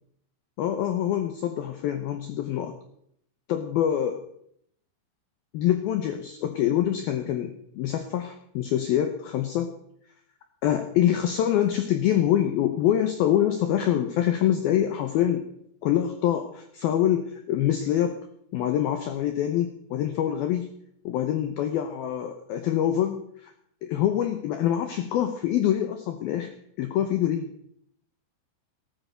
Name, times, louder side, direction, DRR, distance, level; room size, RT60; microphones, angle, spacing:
voice 1, 0.6-2.8 3.5-4.2 5.5-9.7 10.6-15.4 15.8-18.2 18.5-20.7 21.0-23.5 23.8-27.5, left 11 dB, 90° left, 7 dB, 2.1 m, -25 dB
18.0 x 13.0 x 5.2 m, 0.71 s
omnidirectional pair, 5.8 m